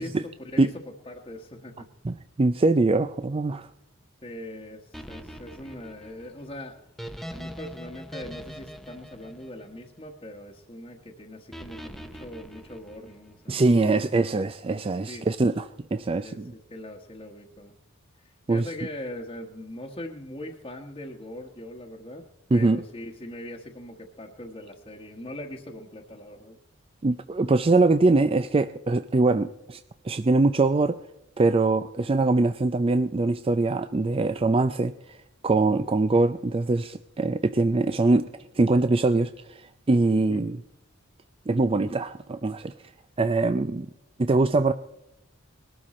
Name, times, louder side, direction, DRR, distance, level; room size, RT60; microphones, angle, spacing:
voice 1, 0.0-1.9 4.2-6.8 7.3-14.0 15.1-15.2 16.1-16.4 16.7-17.7 18.2-22.2 22.5-26.6 40.3-40.5, left 1 dB, 25° left, -2 dB, 1.2 m, -41 dB
voice 2, 2.0-3.7 13.5-16.4 18.5-18.6 22.5-22.8 27.0-31.0 31.4-35.2 35.4-38.3 38.5-40.6 41.5-42.7 43.2-43.9 44.2-44.7, right 3 dB, 25° right, 11 dB, 0.4 m, -23 dB
sound 1, 4.9-10.2 11.5-13.4, equal, ahead, 0.8 m, -42 dB
20.5 x 12.5 x 4.2 m, 0.87 s
head